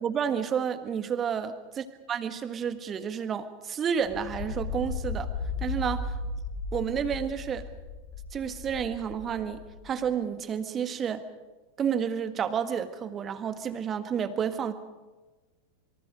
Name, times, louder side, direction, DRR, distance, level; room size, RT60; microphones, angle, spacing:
voice 1, 0.0-1.6 2.1-5.3 5.6-6.2 6.7-7.7 8.3-11.2 11.8-14.7, right 7 dB, 25° right, 10 dB, 1.7 m, -30 dB
sound 1, 4.0-10.1, left 3 dB, 30° left, 3.8 m, -36 dB
27.0 x 24.0 x 5.1 m, 1.2 s
figure-of-eight pair, 90°, 0 cm